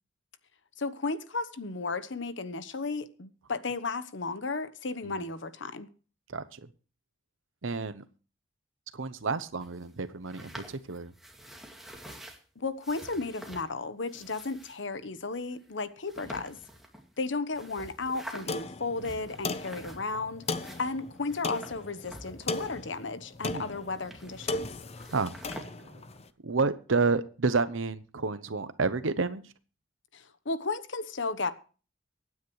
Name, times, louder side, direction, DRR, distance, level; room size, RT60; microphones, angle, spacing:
voice 1, 0.8-5.9 12.6-16.6 17.2-20.4 20.8-24.7 30.1-31.5, left 3 dB, 65° left, 1.1 m, -34 dB
voice 2, 6.3-6.6 7.6-8.0 8.9-11.1 16.3-16.4 23.4-23.6 25.1-25.3 25.6-26.0 26.4-29.4, right 4 dB, 80° right, 0.9 m, -30 dB
sound 1, 9.6-12.4 12.8-13.7 14.0-14.8 15.5-15.6 16.0-17.2 17.5-18.6 19.0-20.2 20.4-23.0 23.3-24.7 24.9-25.6, equal, ahead, 2.2 m, -47 dB
sound 2, 18.5-26.2, left 3 dB, 35° left, 0.7 m, -37 dB
24.0 x 9.4 x 3.1 m
head